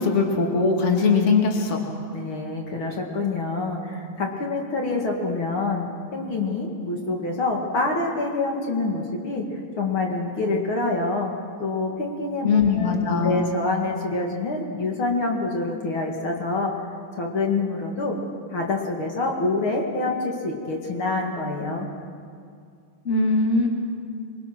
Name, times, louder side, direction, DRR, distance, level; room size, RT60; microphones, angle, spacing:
voice 1, 0.0-1.8 12.4-13.4 23.0-23.7, left 4 dB, 80° left, 1 dB, 0.6 m, -20 dB
voice 2, 2.1-11.3 11.6-16.7 17.1-18.2 18.5-21.9, left 3 dB, 45° left, 0 dB, 1.7 m, -26 dB
27.0 x 23.0 x 6.1 m, 2.3 s
omnidirectional pair, 5.5 m